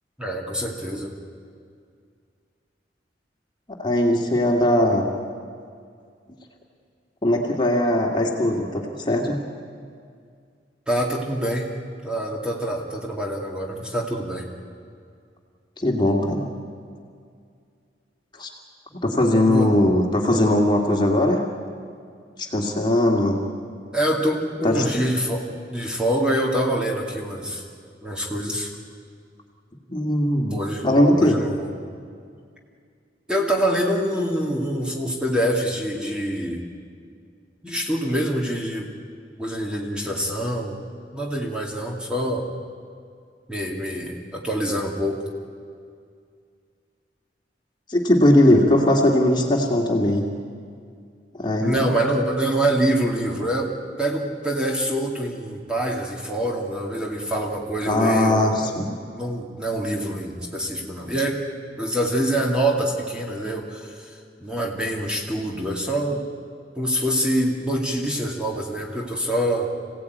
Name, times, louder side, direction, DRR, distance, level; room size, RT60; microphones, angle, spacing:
voice 1, 0.2-1.1 10.9-11.7 12.0-14.5 19.5-19.7 23.9-27.6 28.0-28.7 30.5-30.9 31.1-31.7 33.3-36.7 37.6-38.9 39.4-40.8 41.1-42.5 43.5-45.2 51.6-53.7 54.0-58.7 59.1-61.4 61.8-66.2 66.8-69.7, right 1 dB, 5° right, -1 dB, 2.5 m, -25 dB
voice 2, 3.8-5.0 7.2-9.4 15.8-16.5 18.4-18.5 18.9-21.4 22.4-23.4 24.6-24.9 29.9-30.6 30.8-31.4 47.9-50.3 51.4-51.9 57.9-58.9, left 1 dB, 25° left, 1 dB, 2.3 m, -19 dB
26.5 x 17.0 x 9.4 m, 2.2 s
head